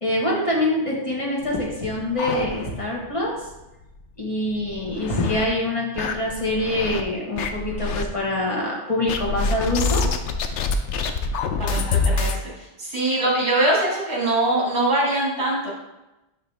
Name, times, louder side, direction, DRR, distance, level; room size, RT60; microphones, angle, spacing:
voice 1, 0.0-3.4 4.2-10.1, left 1 dB, 30° left, -3 dB, 1.4 m, -25 dB
sound 1, 1.5-3.0 3.4-3.5 3.8-3.9 4.5-5.5 6.0-7.0 7.4-8.0 9.1-12.4, left 4 dB, 80° left, 0.9 m, -26 dB
voice 2, 11.6-15.7, right 1 dB, 65° right, -5 dB, 2.2 m, -23 dB
6.7 x 5.3 x 3.4 m, 0.99 s
omnidirectional pair, 1.2 m